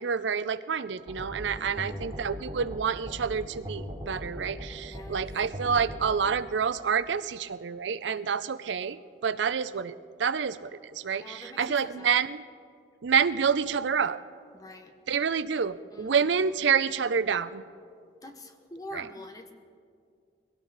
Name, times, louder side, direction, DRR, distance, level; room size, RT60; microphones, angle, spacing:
voice 1, 0.0-12.4 13.0-14.2 15.1-17.6 18.9-19.0, right 6 dB, 80° right, 15 dB, 0.5 m, -28 dB
sound 1, 1.1-6.1, equal, 30° right, 2.7 m, -39 dB
voice 2, 1.5-2.1 4.9-5.2 11.2-12.2 14.5-14.9 15.9-16.6 18.2-19.5, left 1 dB, 20° left, 6 dB, 0.9 m, -45 dB
21.0 x 17.0 x 4.0 m, 2.2 s
head